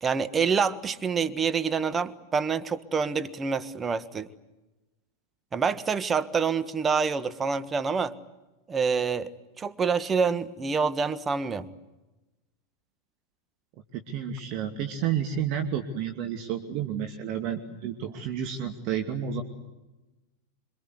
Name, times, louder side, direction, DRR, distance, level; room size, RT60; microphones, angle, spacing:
voice 1, 0.0-4.3 5.5-8.1 8.7-9.3 9.6-11.7, right 5 dB, 20° right, 1.5 m, -27 dB
voice 2, 13.9-19.4, right 8 dB, 40° right, 2.4 m, -31 dB
27.0 x 24.5 x 8.2 m
figure-of-eight pair, 90°, 0 cm